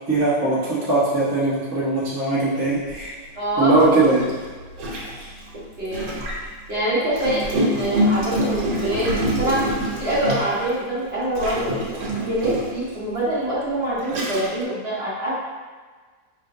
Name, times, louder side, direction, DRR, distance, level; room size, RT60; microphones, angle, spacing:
voice 1, 0.1-3.1 3.6-4.3 5.2-5.3, right 2 dB, 15° right, -10 dB, 0.7 m, -20 dB
Gurgling, 2.9-3.0 3.8-6.5 7.1-10.7 11.4-12.8 13.5-13.6 14.0-14.6, right 1 dB, 80° right, 1.6 m, -26 dB
voice 2, 3.3-3.7 5.8-6.2 6.7-9.6 10.0-11.9 12.2-15.3, right 1 dB, 40° right, -10 dB, 1.1 m, -25 dB
4.9 x 3.0 x 2.6 m, 1.4 s
omnidirectional pair, 2.0 m